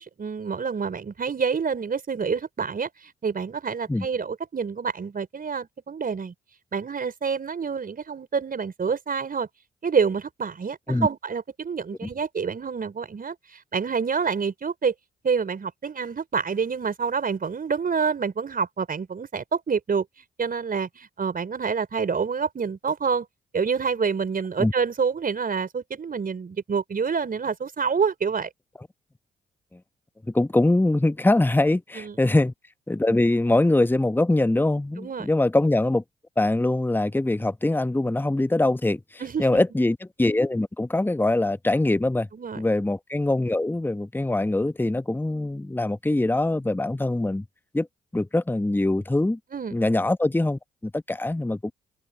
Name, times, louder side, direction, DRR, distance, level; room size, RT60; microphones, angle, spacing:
voice 1, 0.0-6.3 6.7-9.5 9.8-14.9 15.2-20.0 20.4-23.3 23.5-28.5 31.9-32.2 35.0-35.3 39.2-39.6 42.3-42.6 49.5-49.8, right 5 dB, 45° right, 5.2 m, -27 dB
voice 2, 30.3-32.5 32.9-36.0 36.4-42.3 42.6-47.4 47.7-47.9 48.1-49.4 49.7-51.7, left 2 dB, 10° left, 1.1 m, -23 dB
open air
hypercardioid pair, 40°, 20 cm